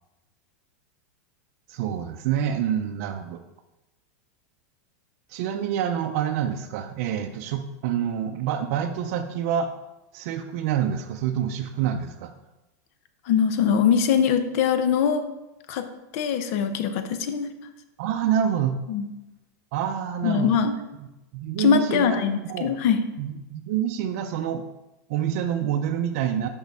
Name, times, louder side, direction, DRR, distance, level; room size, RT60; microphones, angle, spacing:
voice 1, 1.7-3.4 5.3-9.7 10.1-12.3 18.0-18.8 19.7-20.7 21.0-21.1 21.3-22.7 23.2-24.6 25.1-26.5, right 9 dB, 55° right, 6 dB, 0.5 m, -27 dB
voice 2, 13.3-15.2 15.7-15.9 16.1-17.5 18.9-19.0 20.2-20.7 21.6-23.0, left 7 dB, 55° left, 9 dB, 0.7 m, -22 dB
6.4 x 5.3 x 3.5 m, 0.97 s
supercardioid pair, 145°, 9 cm